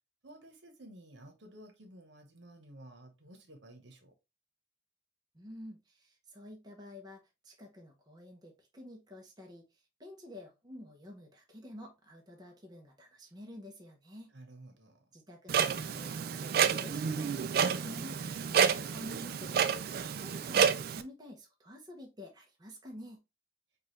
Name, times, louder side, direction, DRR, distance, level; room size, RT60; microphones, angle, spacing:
voice 1, 0.2-4.1 14.3-15.0, right 1 dB, 75° right, 1.0 m, -53 dB
voice 2, 5.3-9.7 10.0-14.3 15.1-19.5 20.2-23.2, left 1 dB, 20° right, 0.8 m, -50 dB
Clock, 15.5-21.0, right 7 dB, 55° right, 0.3 m, -30 dB
4.7 x 2.4 x 3.1 m
head